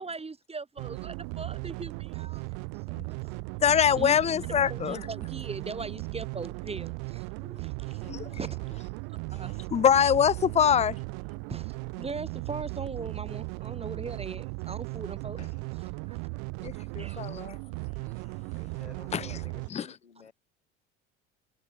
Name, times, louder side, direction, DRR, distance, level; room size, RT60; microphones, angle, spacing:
voice 1, 0.0-2.5 2.9-3.4 3.9-4.2 4.7-8.0 8.3-8.6 9.3-9.6 11.5-11.7 12.0-15.4 16.1-16.2 16.7-17.3, right 4 dB, 20° right, 4.4 m, -40 dB
sound 1, 0.8-19.7, right 40 dB or more, 65° right, 1.8 m, -37 dB
voice 2, 3.6-5.0 8.0-8.4 9.7-11.0 16.6-17.6 19.1-19.4 19.7-19.9, left 8 dB, 20° left, 0.5 m, -24 dB
voice 3, 15.4-15.7 18.5-20.3, left 6 dB, 90° left, 5.9 m, -52 dB
hypercardioid pair, 65°, 32 cm